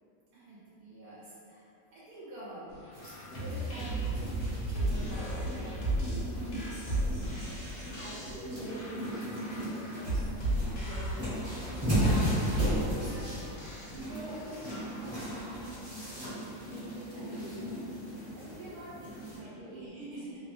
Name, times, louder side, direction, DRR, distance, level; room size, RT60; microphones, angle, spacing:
voice 1, 0.3-7.2 7.9-8.1 11.7-13.6 18.2-18.8 19.3-20.3, right 1 dB, 80° right, -9 dB, 1.1 m, -47 dB
sound 1, 2.8-14.8, right 1 dB, 85° left, 1.3 m, -35 dB
sound 2, 2.9-19.4, equal, 25° right, 0.7 m, -36 dB
sound 3, 6.6-9.5, left 1 dB, 45° left, 0.6 m, -56 dB
voice 2, 7.1-12.2 13.9-16.4 16.9-17.9 18.3-19.8 20.1-20.4, right 1 dB, 60° right, -9 dB, 1.2 m, -45 dB
3.0 x 2.1 x 2.6 m, 2.7 s
omnidirectional pair, 1.6 m